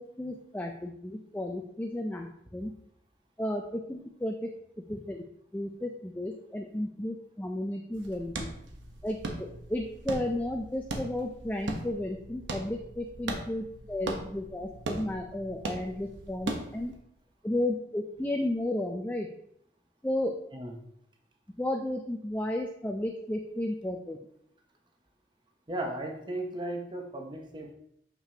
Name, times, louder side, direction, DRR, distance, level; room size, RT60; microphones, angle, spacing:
voice 1, 0.0-2.3 2.5-2.7 3.4-4.5 4.9-5.2 5.5-8.5 9.0-16.9 17.4-19.3 20.0-20.3 21.6-24.2, left 1 dB, 10° left, 3 dB, 0.4 m, -33 dB
sound 1, 7.9-16.9, right 2 dB, 80° right, 0.9 m, -39 dB
voice 2, 25.7-27.7, right 1 dB, 25° right, 2 dB, 0.7 m, -36 dB
6.8 x 5.9 x 2.8 m, 0.73 s
head